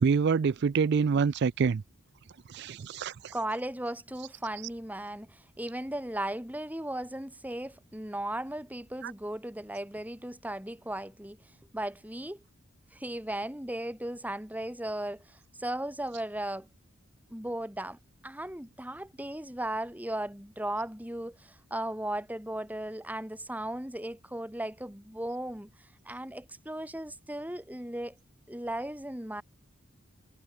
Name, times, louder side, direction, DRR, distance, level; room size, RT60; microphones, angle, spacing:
voice 1, 0.0-1.8 2.5-3.3 9.0-9.1, right 5 dB, 55° right, 0.4 m, -26 dB
voice 2, 3.3-11.4 11.7-12.4 12.9-16.7 17.3-25.7 26.1-28.2 28.5-29.4, right 1 dB, 10° right, 2.4 m, -36 dB
head